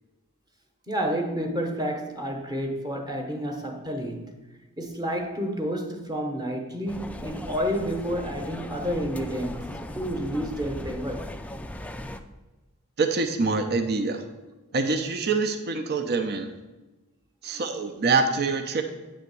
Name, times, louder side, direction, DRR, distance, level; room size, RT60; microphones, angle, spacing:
voice 1, 0.9-4.4 4.8-11.3 17.5-17.6, equal, 20° right, 0.9 m, -30 dB
sound 1, 6.9-12.2, left 1 dB, 5° left, 0.3 m, -37 dB
voice 2, 13.0-14.2 14.7-16.5 17.4-18.8, right 4 dB, 50° right, 0.6 m, -25 dB
8.5 x 3.5 x 6.8 m
head